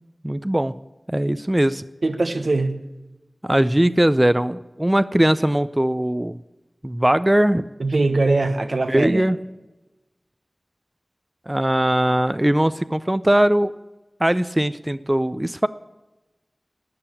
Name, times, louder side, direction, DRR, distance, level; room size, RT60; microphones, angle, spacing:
voice 1, 0.2-0.7 1.1-1.8 3.4-6.4 6.8-7.6 8.9-9.4 11.5-13.7 14.2-15.7, right 1 dB, 20° right, 14 dB, 0.5 m, -20 dB
voice 2, 2.0-2.8 7.8-9.3, right 2 dB, 85° right, 7 dB, 1.2 m, -21 dB
12.5 x 8.8 x 9.7 m, 1.1 s
wide cardioid pair, 40°, 0 cm